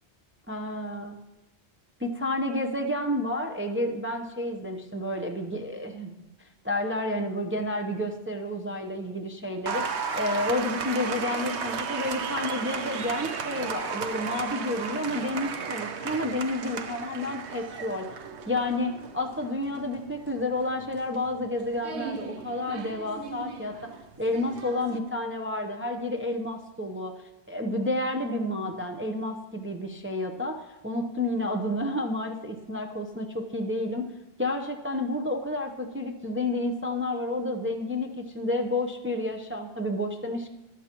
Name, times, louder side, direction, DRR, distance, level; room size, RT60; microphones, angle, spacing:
voice 1, 0.5-1.2 2.0-6.2 6.6-18.1 18.5-23.9 24.2-34.1 34.4-40.5, left 1 dB, 15° right, 3 dB, 0.7 m, -30 dB
Applause, 9.7-25.0, right 6 dB, 80° right, 1.1 m, -35 dB
14.5 x 11.5 x 3.0 m, 0.98 s
omnidirectional pair, 1.1 m